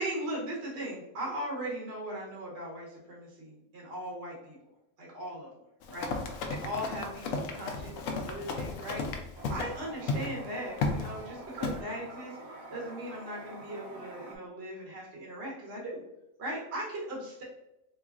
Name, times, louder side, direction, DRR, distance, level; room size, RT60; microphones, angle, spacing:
voice 1, 0.0-4.6 5.0-5.5 5.9-9.2 9.5-12.4 12.7-16.0 16.4-17.4, right 1 dB, 50° right, -4 dB, 1.1 m, -38 dB
Run, 5.8-9.7 10.1-10.3 10.8-11.1 11.6-11.8, left 3 dB, 70° left, 0.9 m, -33 dB
Toilet flush, 9.4-14.4, right 2 dB, 70° right, 1.1 m, -46 dB
3.6 x 3.1 x 2.4 m, 0.87 s
omnidirectional pair, 1.5 m